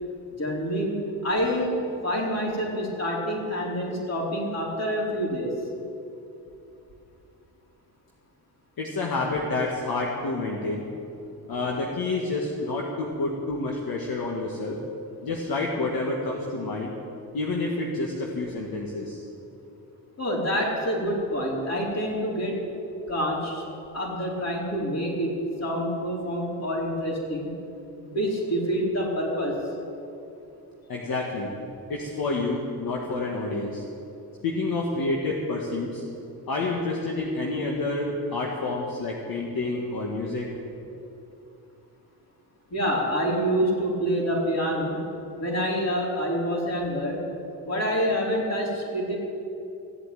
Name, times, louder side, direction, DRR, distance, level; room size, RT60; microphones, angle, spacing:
voice 1, 0.4-1.0 1.2-5.5 20.2-22.6 23.1-23.6 23.9-25.3 25.6-27.5 28.0-29.6 42.7-45.0 45.4-47.2 47.6-49.2, equal, 40° left, -3 dB, 4.5 m, -27 dB
voice 2, 8.8-10.9 11.5-14.8 15.2-16.9 17.3-19.2 30.9-31.5 31.9-33.8 34.4-36.0 36.5-40.5, left 2 dB, 60° left, -1 dB, 2.0 m, -28 dB
16.0 x 8.2 x 9.2 m, 2.9 s
cardioid pair, 80°, 40 cm